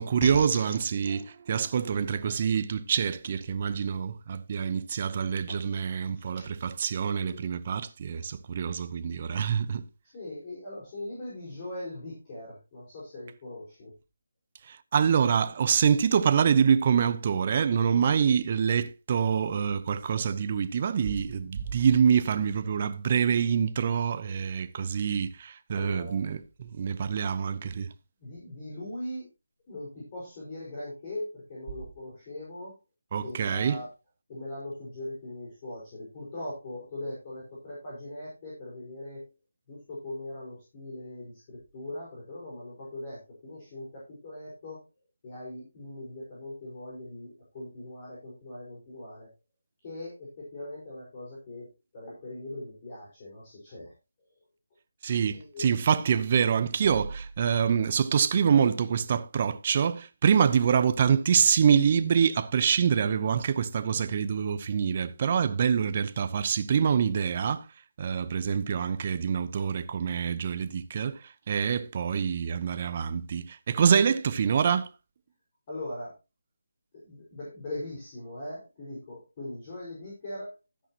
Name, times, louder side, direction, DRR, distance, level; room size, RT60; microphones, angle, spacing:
voice 1, 0.0-9.8 14.7-27.9 33.1-33.8 55.0-67.6 68.0-71.2 71.5-74.9, right 7 dB, 35° right, 0.7 m, -26 dB
voice 2, 10.1-13.9 25.7-26.2 28.2-29.3 29.7-32.8 33.2-33.9 34.3-39.3 39.7-44.8 45.2-49.3 49.8-51.7 51.9-53.9 55.3-55.7 75.7-76.1 76.9-80.5, left 1 dB, 30° left, 4.9 m, -40 dB
12.5 x 10.0 x 2.9 m
figure-of-eight pair, 165°, 0 cm